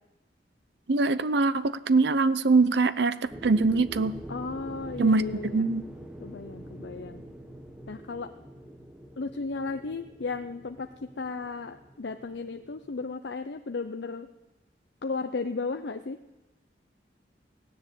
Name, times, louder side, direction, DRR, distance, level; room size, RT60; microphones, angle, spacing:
voice 1, 0.9-4.1 5.0-5.8, right 3 dB, 70° right, 14 dB, 0.6 m, -23 dB
sound 1, 3.3-13.1, right 1 dB, 5° right, 1.3 m, -45 dB
voice 2, 4.3-5.7 6.2-7.2 7.9-8.3 9.2-10.9 11.2-14.3 15.0-16.2, left 4 dB, 75° left, 7 dB, 0.6 m, -35 dB
16.0 x 10.0 x 8.0 m, 1.0 s
head